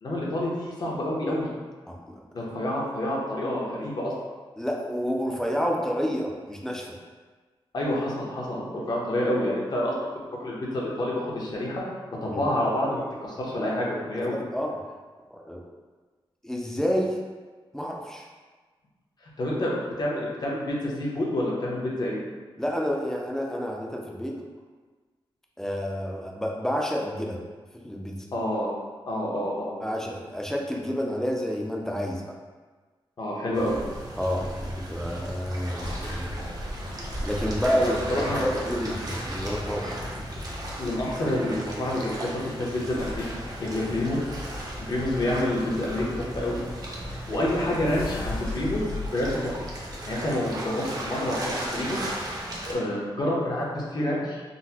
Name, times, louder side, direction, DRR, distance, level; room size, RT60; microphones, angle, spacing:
voice 1, 0.0-1.5 2.3-4.1 7.7-9.9 10.3-11.8 12.2-14.4 19.2-22.2 28.3-28.7 29.1-29.7 33.2-33.8 37.8-38.4 40.8-43.2 43.6-44.2 44.8-46.6 47.3-48.8 49.1-49.5 50.1-52.4 52.6-54.4, left 1 dB, 45° left, -4 dB, 0.7 m, -28 dB
voice 2, 4.6-7.0 12.3-12.4 14.3-14.8 15.3-15.6 16.4-17.2 17.7-18.3 22.6-24.4 25.6-27.4 27.7-28.2 29.8-32.3 34.2-36.4 37.2-40.0, equal, 5° left, -1 dB, 0.4 m, -29 dB
sound 1, 33.5-52.7, right 1 dB, 40° right, 0.5 m, -36 dB
sound 2, 35.8-41.3 42.3-42.4 42.6-42.7 42.9-50.4, left 2 dB, 85° left, 1.4 m, -39 dB
3.9 x 2.0 x 2.7 m, 1.4 s
wide cardioid pair, 135°, 9 cm